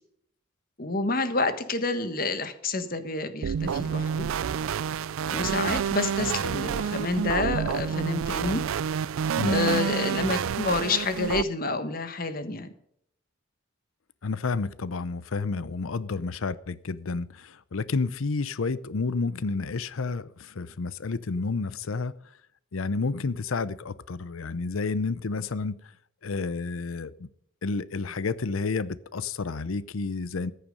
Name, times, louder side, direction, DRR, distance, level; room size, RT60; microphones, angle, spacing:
voice 1, 0.8-4.3 5.3-8.6 9.4-12.7, left 3 dB, 45° left, 1.4 m, -28 dB
sound 1, 3.4-11.4, right 7 dB, 85° right, 0.4 m, -28 dB
voice 2, 14.2-22.1 22.7-25.9 26.2-27.3 27.6-30.5, left 4 dB, 90° left, 0.7 m, -30 dB
14.5 x 10.0 x 5.2 m
head